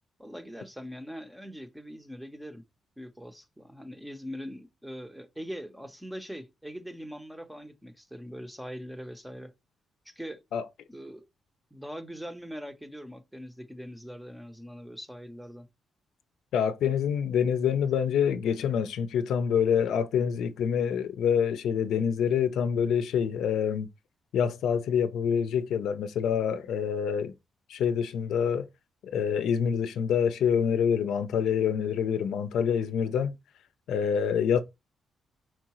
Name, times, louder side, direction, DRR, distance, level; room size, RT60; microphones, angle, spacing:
voice 1, 0.2-2.6 3.0-9.5 10.1-10.4 10.9-11.3 11.7-15.7, equal, 5° right, 0.6 m, -42 dB
voice 2, 16.5-23.9 24.3-27.3 27.7-28.7 29.0-33.3 33.9-34.6, left 7 dB, 85° left, 0.5 m, -26 dB
4.6 x 3.7 x 2.9 m
cardioid pair, 140°, 0 cm